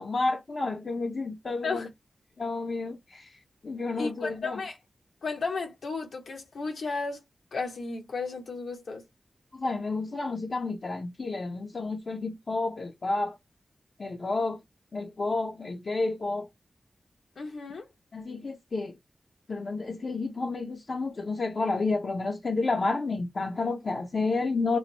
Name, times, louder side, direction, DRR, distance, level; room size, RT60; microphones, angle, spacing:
voice 1, 0.0-1.9 2.4-3.4 3.6-4.6 9.5-13.4 14.0-14.6 14.9-16.5 18.1-19.0 19.5-24.8, left 3 dB, 60° left, 0.6 m, -30 dB
voice 2, 4.0-4.8 5.2-7.2 7.5-9.0 17.4-17.9, left 4 dB, 85° left, 1.0 m, -33 dB
3.1 x 2.0 x 4.0 m
cardioid pair, 65°, 0 cm